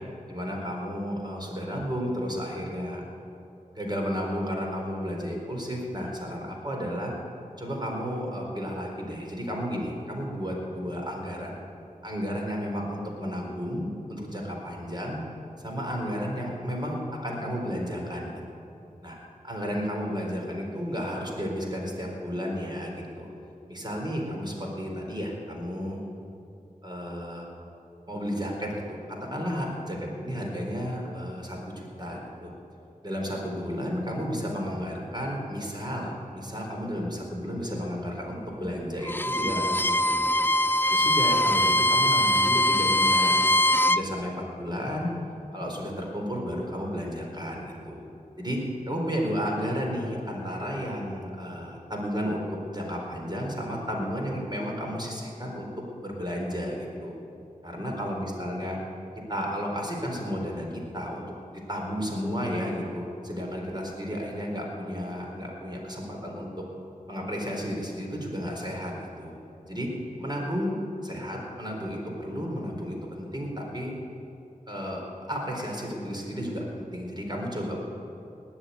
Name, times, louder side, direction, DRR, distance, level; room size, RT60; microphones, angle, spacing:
voice 1, 0.3-3.0 3.7-7.1 7.6-11.6 12.0-15.2 15.6-18.3 19.0-19.2 19.4-23.3 23.7-26.0 26.8-27.5 28.1-31.6 32.0-32.5 33.0-40.4 40.9-43.6 43.9-45.1 45.5-48.0 48.4-48.6 48.9-52.4 52.7-55.7 56.0-57.1 57.6-58.8 59.3-61.3 61.5-66.5 67.1-69.3 69.7-69.9 70.2-70.7 71.0-73.9 74.7-75.0 75.3-77.8, equal, 30° right, -1 dB, 4.2 m, -32 dB
Bowed string instrument, 39.0-44.0, left 1 dB, 15° left, 0.4 m, -22 dB
19.5 x 7.3 x 9.4 m, 2.8 s
wide cardioid pair, 50°, 15 cm